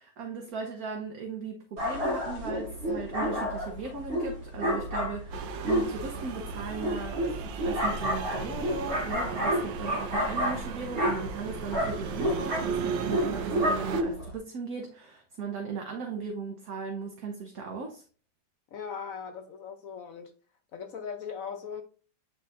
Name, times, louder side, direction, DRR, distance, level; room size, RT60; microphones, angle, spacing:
voice 1, 0.0-18.0, right 5 dB, 55° right, 1.2 m, -37 dB
sound 1, 1.8-14.4, equal, 90° right, 2.5 m, -30 dB
sound 2, 5.3-14.0, right 6 dB, 70° right, 1.4 m, -36 dB
voice 2, 18.7-20.3 20.7-21.8, left 6 dB, 65° left, 0.8 m, -39 dB
8.7 x 4.6 x 2.5 m
omnidirectional pair, 2.1 m